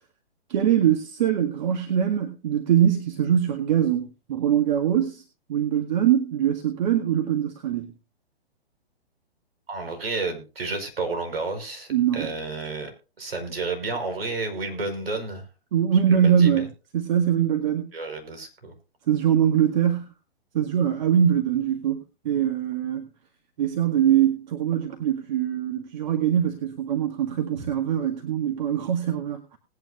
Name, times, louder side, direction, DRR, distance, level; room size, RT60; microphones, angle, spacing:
voice 1, 0.5-5.2 5.5-7.9 11.9-12.3 15.7-16.7 16.9-17.9 19.1-20.1 20.5-23.0 23.6-29.6, right 9 dB, 45° right, 3 dB, 2.0 m, -23 dB
voice 2, 9.7-12.9 13.2-15.4 16.1-16.6 17.9-18.7 27.6-27.7, right 3 dB, 65° right, 6 dB, 5.1 m, -31 dB
20.0 x 9.6 x 2.7 m, 0.31 s
figure-of-eight pair, 125°, 31 cm